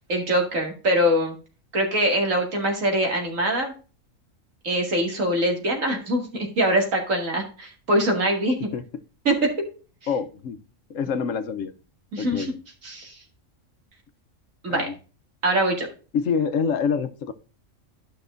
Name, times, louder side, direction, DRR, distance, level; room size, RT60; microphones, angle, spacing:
voice 1, 0.1-1.4 1.7-3.7 4.6-8.6 9.3-9.4 12.1-12.5 12.8-13.2 14.6-14.9 15.4-15.9, right 1 dB, 75° right, 2.5 m, -23 dB
voice 2, 10.1-10.6 10.9-11.7 12.2-12.6 14.7-14.9 16.1-17.3, left 6 dB, 75° left, 1.1 m, -26 dB
12.0 x 5.9 x 2.5 m
omnidirectional pair, 1.4 m